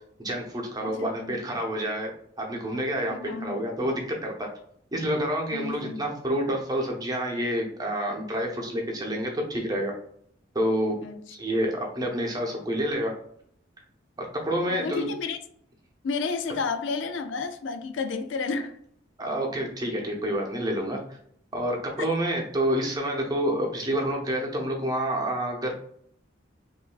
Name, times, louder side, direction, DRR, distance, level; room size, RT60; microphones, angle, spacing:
voice 1, 0.2-2.1 2.4-4.5 4.9-9.9 10.5-11.0 11.4-13.1 14.2-15.1 19.2-21.0 21.5-25.7, equal, 20° right, 0.8 m, -28 dB
voice 2, 0.8-1.3 3.1-3.6 5.5-6.0 11.0-11.2 14.7-15.4 16.0-18.8 22.0-22.1, left 4 dB, 80° left, 0.4 m, -31 dB
5.5 x 2.6 x 2.3 m
head